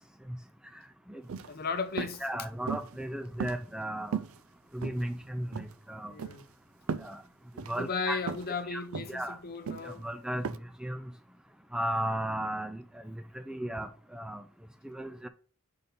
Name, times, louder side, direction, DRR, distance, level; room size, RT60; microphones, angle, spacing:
sound 1, 1.2-1.5 2.0-2.2 2.7-3.0 3.4-3.9 4.1-4.4 4.8-5.3 5.5-5.7 6.2-6.4 6.9-7.1 7.6-7.8 8.3-8.5 8.9-9.2 9.7-9.9 10.4-10.6, right 6 dB, 75° right, 0.4 m, -36 dB
voice 1, 1.4-2.2 6.0-6.4 7.7-10.1, left 4 dB, 45° left, 0.7 m, -35 dB
voice 2, 2.2-4.2 4.7-6.1 7.0-7.2 7.7-8.2 8.7-9.4 9.8-10.4 10.8-11.1 11.7-14.4 14.8-15.3, right 1 dB, 5° right, 0.3 m, -35 dB
5.3 x 4.2 x 5.1 m
head